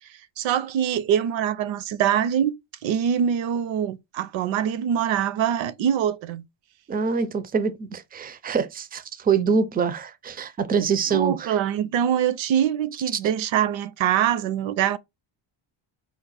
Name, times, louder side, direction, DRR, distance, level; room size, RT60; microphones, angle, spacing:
voice 1, 0.4-2.5 2.8-6.4 11.1-15.0, right 9 dB, 65° right, 0.6 m, -24 dB
voice 2, 6.9-11.6, right 6 dB, 20° right, 0.4 m, -25 dB
4.8 x 2.1 x 4.0 m
cardioid pair, 120°, 49 cm